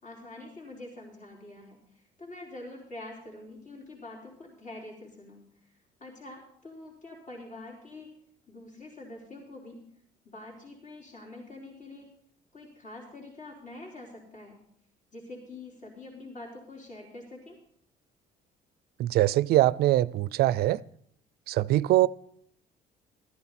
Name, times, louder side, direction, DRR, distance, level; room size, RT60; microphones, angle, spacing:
voice 1, 0.0-5.4 6.0-8.1 8.5-9.8 10.2-12.1 12.5-14.6 15.1-17.6, left 2 dB, 50° left, 4.4 m, -45 dB
voice 2, 19.0-20.8 21.5-22.1, right 15 dB, 70° right, 0.4 m, -23 dB
14.0 x 13.5 x 4.2 m
cardioid pair, 110°, 17 cm